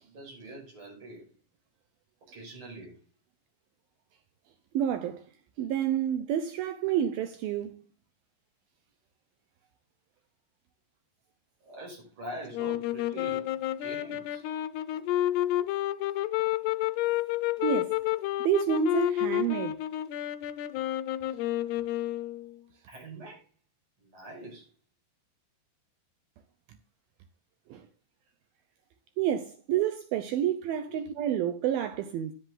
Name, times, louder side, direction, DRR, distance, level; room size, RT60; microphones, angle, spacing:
voice 1, 0.0-1.3 2.3-3.0 11.6-14.4 22.9-23.4 24.0-24.7 29.7-29.8 30.9-31.0, right 1 dB, 30° right, 6.4 m, -44 dB
voice 2, 4.7-5.2 5.6-7.8 17.6-18.0 18.4-19.8 27.7-27.8 29.2-32.3, right 9 dB, 75° right, 2.2 m, -29 dB
sound 1, 12.5-22.6, left 14 dB, 80° left, 2.6 m, -30 dB
10.5 x 9.9 x 3.9 m
omnidirectional pair, 5.0 m